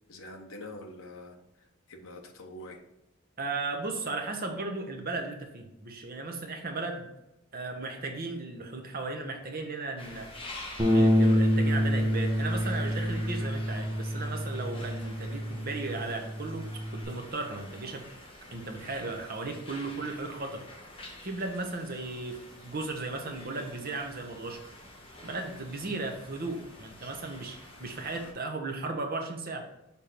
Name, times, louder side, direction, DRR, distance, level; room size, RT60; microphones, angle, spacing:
voice 1, 0.1-1.4 1.9-2.8, left 1 dB, 65° left, 3 dB, 0.8 m, -44 dB
voice 2, 3.4-7.1 7.5-10.3 10.8-16.6 17.0-18.0 18.5-20.6 21.2-24.6 25.2-29.7, right 3 dB, 40° right, 3 dB, 1.0 m, -36 dB
sound 1, 10.0-28.3, left 1 dB, 25° left, 1.0 m, -48 dB
Bass guitar, 10.8-17.0, equal, 15° right, 1.0 m, -27 dB
6.9 x 3.5 x 4.4 m, 0.89 s
head